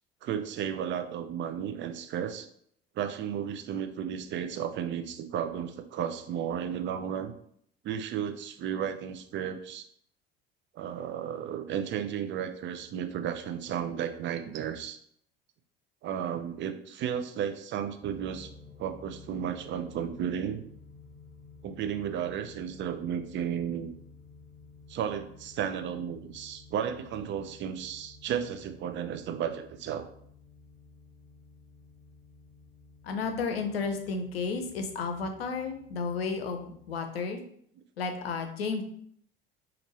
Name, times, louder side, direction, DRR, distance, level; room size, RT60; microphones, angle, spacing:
voice 1, 0.2-2.5 3.0-7.3 7.8-9.8 10.7-15.0 16.0-18.5 18.8-20.6 21.6-23.9 24.9-30.1, right 8 dB, 40° right, 8 dB, 0.5 m, -33 dB
sound 1, 18.0-37.0, left 4 dB, 5° right, 1.1 m, -53 dB
voice 2, 33.0-37.4 38.0-38.8, left 4 dB, 85° left, 6 dB, 0.6 m, -32 dB
4.3 x 2.6 x 2.9 m, 0.66 s
hypercardioid pair, 65°, 29 cm